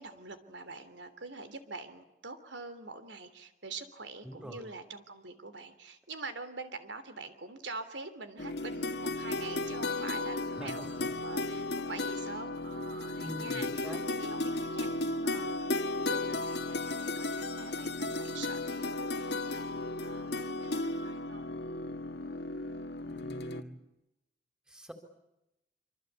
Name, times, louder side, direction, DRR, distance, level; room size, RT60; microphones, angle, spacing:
voice 1, 0.0-15.7 16.1-21.4, right 3 dB, 80° right, 10 dB, 3.3 m, -45 dB
voice 2, 4.2-4.6 10.6-10.9 13.2-14.0 23.0-23.8 24.7-24.9, equal, 5° right, 6 dB, 3.8 m, -44 dB
sound 1, 8.4-23.6, left 2 dB, 70° left, 1.8 m, -35 dB
26.5 x 26.0 x 8.4 m, 0.88 s
head